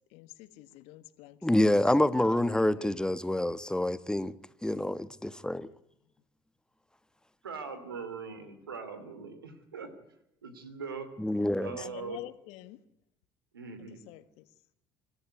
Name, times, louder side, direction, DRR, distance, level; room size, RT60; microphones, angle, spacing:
voice 1, 0.1-1.7 2.4-3.0 7.6-7.7 8.4-8.6 11.7-12.8 13.9-14.5, left 16 dB, 70° left, 1.6 m, -48 dB
voice 2, 1.4-4.3 4.6-5.7 11.2-11.8, left 1 dB, 5° left, 1.2 m, -27 dB
voice 3, 7.4-9.9 10.4-11.1 11.6-12.2 13.5-14.0, right 5 dB, 90° right, 2.9 m, -41 dB
25.0 x 14.0 x 9.6 m
hypercardioid pair, 60°, 12 cm